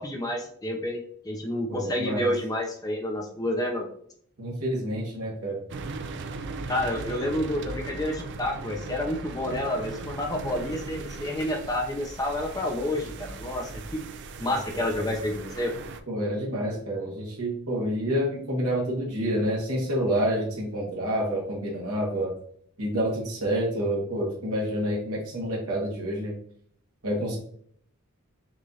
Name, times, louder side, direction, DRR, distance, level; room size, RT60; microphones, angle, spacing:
voice 1, 0.0-3.8 6.7-14.0 14.4-15.7, left 1 dB, 15° left, 1 dB, 0.6 m, -29 dB
voice 2, 1.7-2.3 4.4-5.6 14.5-14.6 16.1-22.3 22.8-26.3 27.0-27.4, equal, 80° right, -3 dB, 1.3 m, -28 dB
sound 1, 5.7-16.0, right 3 dB, 50° right, 0.4 m, -38 dB
6.0 x 2.5 x 2.8 m, 0.64 s
head